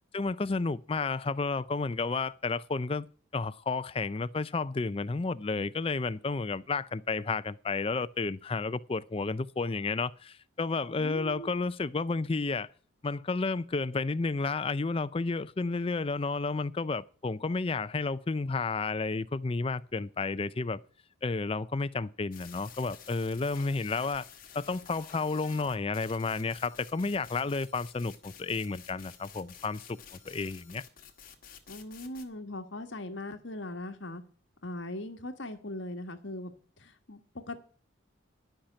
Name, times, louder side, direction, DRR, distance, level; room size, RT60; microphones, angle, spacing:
voice 1, 0.1-3.1 3.3-12.7 13.0-20.8 21.2-24.3 24.5-30.0 30.3-30.8, left 3 dB, 25° left, 0.4 m, -31 dB
voice 2, 11.0-11.5 31.7-34.2 34.6-36.5 36.8-37.6, left 1 dB, 60° left, 1.4 m, -39 dB
sound 1, 22.3-32.2, left 8 dB, 45° left, 1.7 m, -51 dB
11.5 x 5.8 x 8.7 m
head